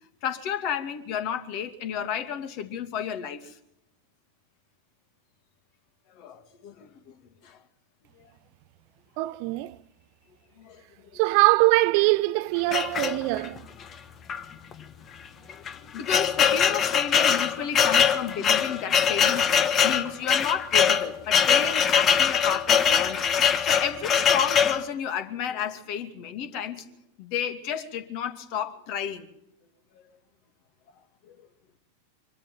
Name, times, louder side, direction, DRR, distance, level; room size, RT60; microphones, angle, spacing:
voice 1, 0.2-3.6 6.2-7.6 8.2-8.3 10.6-11.2 13.5-13.9 15.5-19.6 19.8-29.3 31.2-31.4, left 8 dB, 45° left, 2.6 m, -32 dB
voice 2, 9.2-9.7 11.1-13.6, right 22 dB, 45° right, 0.7 m, -22 dB
sound 1, 12.7-13.6 14.3-14.4 14.7-14.8 15.5-24.8, left 7 dB, 25° left, 1.4 m, -22 dB
25.0 x 13.5 x 9.1 m
figure-of-eight pair, 90°, 0 cm